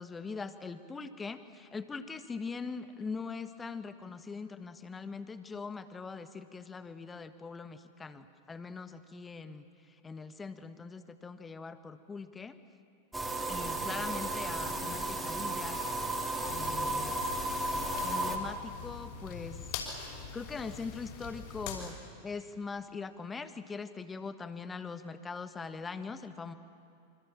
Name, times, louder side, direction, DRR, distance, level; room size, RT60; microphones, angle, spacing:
voice 1, 0.0-9.7 10.0-12.6 13.5-15.8 16.5-17.1 18.0-19.6 20.3-22.0 22.2-26.5, left 4 dB, 15° left, 11 dB, 1.4 m, -41 dB
sound 1, 13.1-18.4, right 2 dB, 10° right, 3.3 m, -34 dB
sound 2, 16.4-21.9, left 6 dB, 50° left, 5.7 m, -43 dB
27.5 x 25.5 x 7.4 m, 2.7 s
figure-of-eight pair, 90°, 0 cm